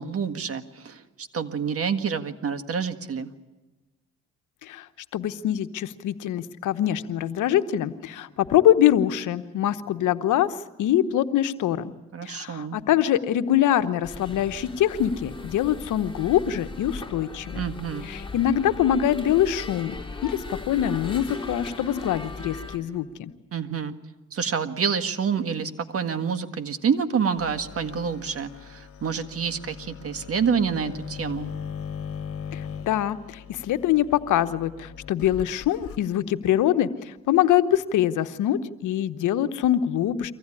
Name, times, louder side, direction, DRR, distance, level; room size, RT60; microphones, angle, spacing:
voice 1, 0.0-3.3 12.1-12.8 17.6-18.1 23.5-23.9 24.3-31.5, right 6 dB, 50° right, 9 dB, 1.7 m, -28 dB
voice 2, 5.1-10.5 10.8-11.9 12.2-17.6 18.0-23.3 32.5-40.3, left 11 dB, 80° left, 11 dB, 1.1 m, -24 dB
sound 1, 14.0-22.8, left 3 dB, 15° left, 4.0 m, -38 dB
sound 2, 27.4-36.0, left 7 dB, 50° left, 2.0 m, -39 dB
24.5 x 16.0 x 9.9 m, 1.1 s
cardioid pair, 90°, 30 cm